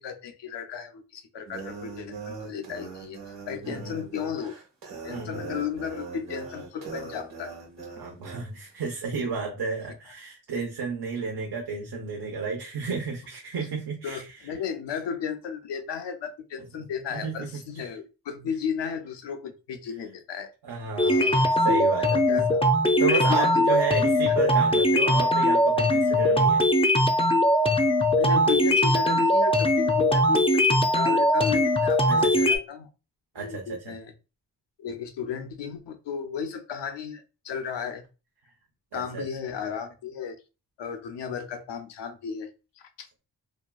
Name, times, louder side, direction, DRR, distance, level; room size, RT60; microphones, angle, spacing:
voice 1, 0.0-3.2 3.5-4.6 5.0-7.5 14.0-20.5 21.0-21.5 22.0-22.6 23.1-23.8 28.2-32.9 33.4-34.1 34.8-38.0 38.9-40.4 40.8-43.1, left 7 dB, 80° left, 0.6 m, -34 dB
sound 1, 1.5-8.5, right 4 dB, 90° right, 1.2 m, -40 dB
voice 2, 3.6-4.0 5.1-5.4 8.0-14.5 17.1-17.5 20.6-22.2 23.0-26.6 32.1-32.5 33.3-34.0 38.9-39.3, right 5 dB, 65° right, 0.7 m, -32 dB
sound 2, 21.0-32.6, left 1 dB, 15° left, 0.5 m, -21 dB
2.7 x 2.3 x 2.2 m
cardioid pair, 45°, 42 cm